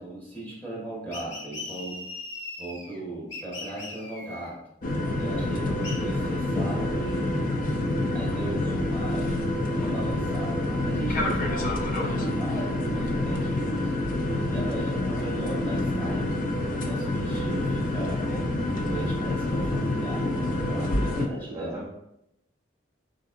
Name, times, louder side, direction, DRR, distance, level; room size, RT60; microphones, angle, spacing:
voice 1, 0.0-2.0 2.6-4.6 5.2-7.3 8.1-9.3 9.8-13.9 14.5-16.3 16.7-18.2 18.7-21.8, right 2 dB, 10° left, -5 dB, 1.2 m, -37 dB
sound 1, 1.1-3.0 3.3-4.5 5.8-6.0, left 2 dB, 70° left, 0.9 m, -39 dB
sound 2, 4.8-21.3, left 1 dB, 45° left, 0.4 m, -27 dB
voice 2, 14.2-14.6 20.5-21.1 21.4-21.9, right 1 dB, 15° right, -6 dB, 0.5 m, -41 dB
3.9 x 3.8 x 2.5 m, 0.83 s
head